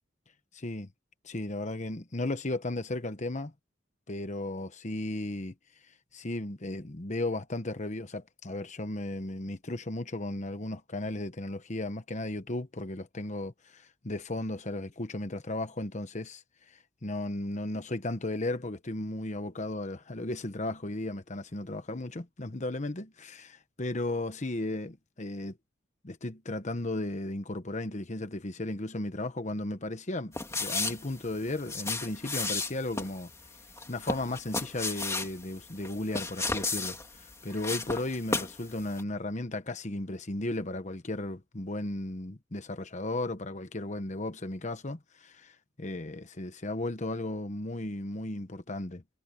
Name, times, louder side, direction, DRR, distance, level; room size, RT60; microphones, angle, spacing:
voice 1, 0.5-0.9 1.2-3.5 4.1-5.5 6.1-24.9 25.2-25.6 26.0-33.3 33.9-49.0, left 2 dB, 40° left, 1.1 m, -35 dB
sound 1, 30.3-38.6 38.9-39.0, left 3 dB, 15° left, 2.5 m, -34 dB
head